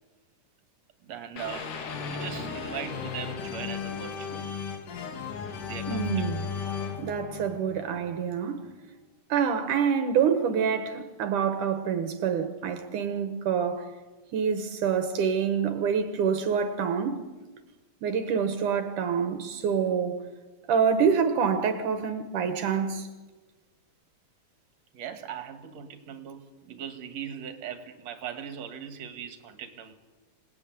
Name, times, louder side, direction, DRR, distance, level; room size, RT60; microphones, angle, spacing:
voice 1, 1.0-1.8 2.1-4.5 5.7-6.4 24.9-29.9, right 8 dB, 60° right, 3.2 m, -39 dB
sound 1, 1.4-8.3, left 5 dB, 80° left, 3.9 m, -35 dB
voice 2, 5.9-6.4 7.0-8.6 9.3-13.9 14.3-17.2 18.0-20.2 20.7-23.1, right 7 dB, 80° right, 3.1 m, -26 dB
27.0 x 19.5 x 9.6 m
omnidirectional pair, 3.6 m